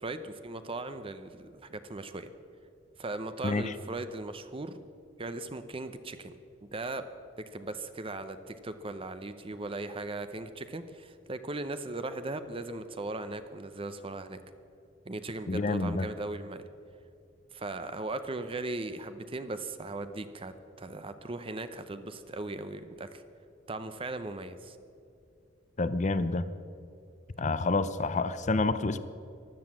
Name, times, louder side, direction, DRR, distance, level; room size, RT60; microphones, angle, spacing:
voice 1, 0.0-2.3 3.0-4.8 5.2-6.4 6.6-7.1 7.4-14.4 15.0-16.7 17.5-23.2 23.7-24.8, right 2 dB, 30° right, 10 dB, 0.7 m, -38 dB
voice 2, 3.4-3.7 15.5-16.1 25.8-26.5 27.4-29.0, left 3 dB, 40° left, 13 dB, 0.6 m, -28 dB
15.5 x 11.5 x 7.3 m, 2.5 s
head